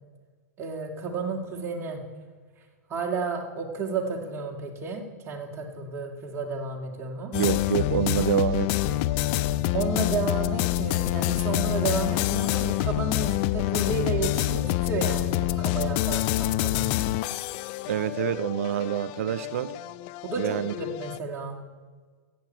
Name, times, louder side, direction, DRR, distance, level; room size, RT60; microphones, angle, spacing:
voice 1, 0.6-2.0 2.9-7.3 9.7-16.9 20.2-21.6, right 4 dB, 30° right, 2 dB, 1.9 m, -32 dB
sound 1, 7.3-21.2, left 15 dB, 45° left, 0.4 m, -27 dB
voice 2, 7.3-9.0 17.9-19.7 20.4-20.7, right 10 dB, 65° right, 15 dB, 0.5 m, -27 dB
14.5 x 8.6 x 4.4 m, 1.5 s
hypercardioid pair, 110°, 8 cm